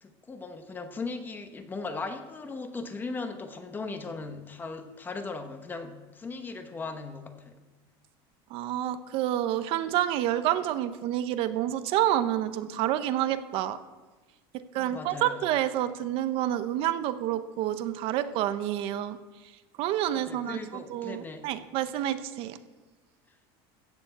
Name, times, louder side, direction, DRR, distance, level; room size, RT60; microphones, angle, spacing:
voice 1, 0.0-7.6 14.8-15.4 20.1-21.5, left 3 dB, 15° left, 8 dB, 1.0 m, -38 dB
voice 2, 8.5-13.8 14.7-19.2 19.8-22.6, right 12 dB, 50° right, 11 dB, 0.8 m, -28 dB
15.0 x 6.9 x 8.1 m, 1.3 s
cardioid pair, 160°, 12 cm